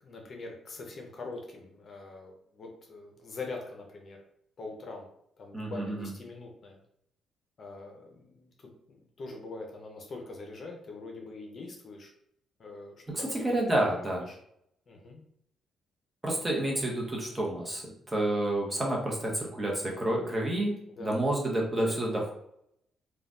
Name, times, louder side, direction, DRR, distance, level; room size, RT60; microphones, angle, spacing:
voice 1, 0.0-4.2 4.6-5.1 5.4-6.8 7.6-12.1 12.6-13.6 13.9-14.4 14.9-15.2 20.9-21.2, left 3 dB, 50° left, 1 dB, 0.7 m, -43 dB
voice 2, 5.5-6.1 13.1-14.3 16.2-22.3, right 1 dB, 15° right, -2 dB, 0.9 m, -29 dB
3.1 x 2.3 x 2.6 m, 0.73 s
cardioid pair, 90°, 0 cm